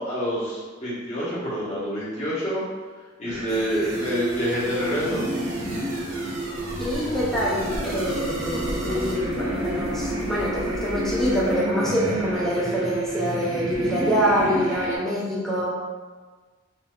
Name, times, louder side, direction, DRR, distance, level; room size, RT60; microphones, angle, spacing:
voice 1, 0.0-2.6 3.2-5.2, equal, 35° left, -10 dB, 1.1 m, -27 dB
sound 1, 3.2-15.0, right 1 dB, 80° right, 0.9 m, -29 dB
sound 2, 6.5-11.6, equal, 80° left, 0.9 m, -36 dB
voice 2, 6.8-15.7, equal, ahead, -8 dB, 0.6 m, -25 dB
3.4 x 2.8 x 2.4 m, 1.4 s
head